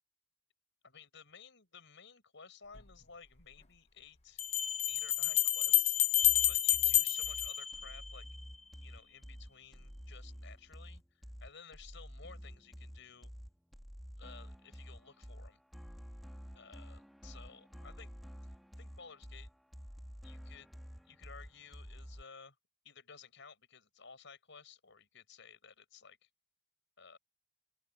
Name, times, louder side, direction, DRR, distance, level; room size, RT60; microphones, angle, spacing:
voice 1, 0.8-4.4 4.9-6.1 6.5-8.3 8.8-13.3 14.2-15.6 16.5-18.1 18.8-19.5 20.2-20.7 21.1-22.6 22.8-26.3 27.0-27.2, left 6 dB, 65° left, 6.3 m, -55 dB
sound 1, 2.8-2.9 4.4-8.4, left 12 dB, 35° left, 1.2 m, -29 dB
sound 2, 6.2-22.2, equal, ahead, 3.3 m, -50 dB
open air
head